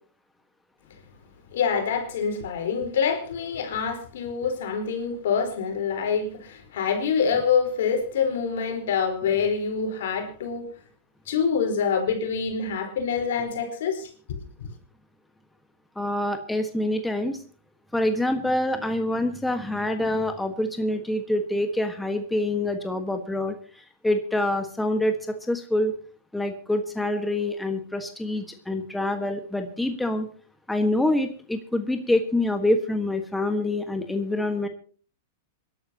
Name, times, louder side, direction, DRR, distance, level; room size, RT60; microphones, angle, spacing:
voice 1, 1.5-10.7 11.3-14.7, left 6 dB, 70° left, 4.2 m, -26 dB
voice 2, 15.9-17.4 17.9-25.2 25.5-25.9 26.3-30.3 30.7-34.7, left 1 dB, 5° left, 1.4 m, -26 dB
27.0 x 12.0 x 2.9 m
hypercardioid pair, 115°, 0 cm